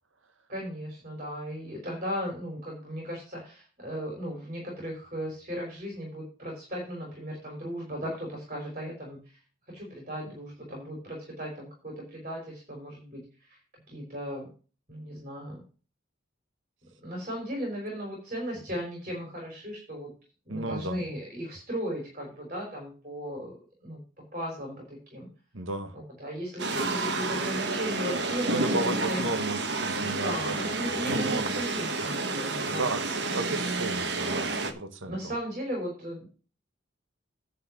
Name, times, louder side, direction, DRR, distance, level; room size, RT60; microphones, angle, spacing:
voice 1, 0.5-9.2 9.7-13.6 13.9-14.5 14.9-15.6 17.0-20.1 20.5-25.3 25.9-29.3 30.2-32.9 35.1-36.3, equal, 40° right, 3.7 m, -36 dB
voice 2, 20.5-21.0 25.5-26.0 28.5-31.6 32.7-35.2, right 2 dB, 90° right, 1.3 m, -34 dB
sound 1, 26.6-34.7, right 3 dB, 60° right, 1.4 m, -30 dB
10.5 x 4.3 x 7.7 m
head